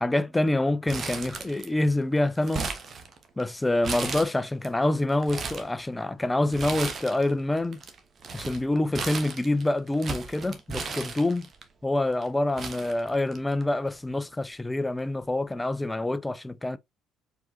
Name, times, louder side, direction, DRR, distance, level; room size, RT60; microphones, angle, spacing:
voice 1, 0.0-2.7 3.4-7.8 8.3-11.5 11.8-16.8, left 1 dB, 15° left, 0.5 m, -26 dB
Crumpling crinkling, 0.9-1.9 2.2-3.4 3.8-4.7 5.1-5.7 6.5-7.3 7.6-11.6 12.2-12.3 12.6-13.6 13.9-14.0 15.0-15.2, right 4 dB, 40° right, 1.1 m, -35 dB
4.7 x 3.7 x 2.7 m
hypercardioid pair, 50°, 0 cm